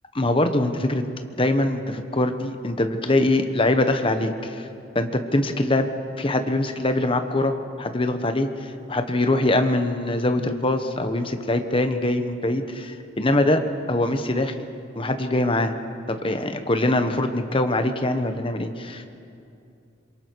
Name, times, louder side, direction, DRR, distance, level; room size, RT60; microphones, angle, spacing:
voice 1, 0.1-1.0 1.4-4.7 4.9-5.9 6.2-8.5 8.9-13.6 13.9-14.7 15.0-15.7 16.1-19.0, left 1 dB, 30° left, 7 dB, 1.2 m, -23 dB
26.0 x 23.0 x 4.7 m, 2.6 s
head